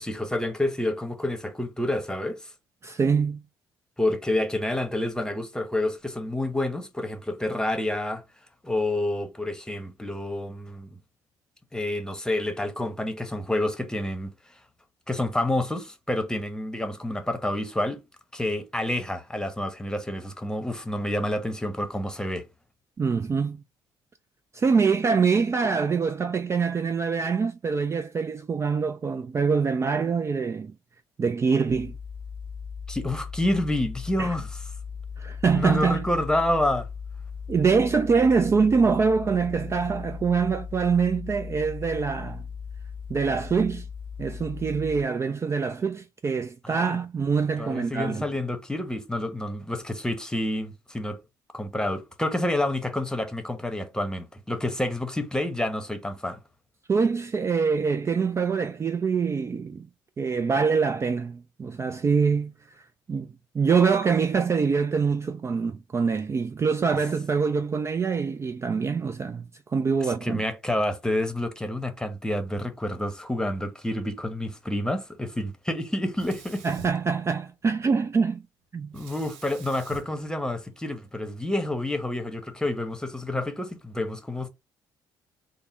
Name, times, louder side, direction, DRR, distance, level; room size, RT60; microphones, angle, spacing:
voice 1, 0.0-2.5 4.0-8.2 8.6-10.9 11.7-14.3 15.1-18.0 18.3-22.4 32.9-34.5 35.5-36.9 46.6-47.0 47.6-51.2 51.5-56.4 70.2-76.6 78.9-84.5, left 1 dB, 5° left, 0.9 m, -28 dB
voice 2, 2.8-3.4 23.0-23.6 24.5-30.7 31.2-32.0 34.2-34.3 35.2-36.0 37.5-42.4 43.1-43.9 44.2-48.3 56.9-59.9 60.2-62.5 63.1-63.3 63.5-70.4 76.6-78.4 78.7-78.9, right 5 dB, 30° right, 0.3 m, -24 dB
sound 1, 31.7-45.0, left 6 dB, 55° left, 0.6 m, -38 dB
Sink (filling or washing), 76.1-77.8 78.9-81.2, right 6 dB, 85° right, 0.6 m, -47 dB
3.6 x 2.1 x 4.3 m
supercardioid pair, 60°, 9 cm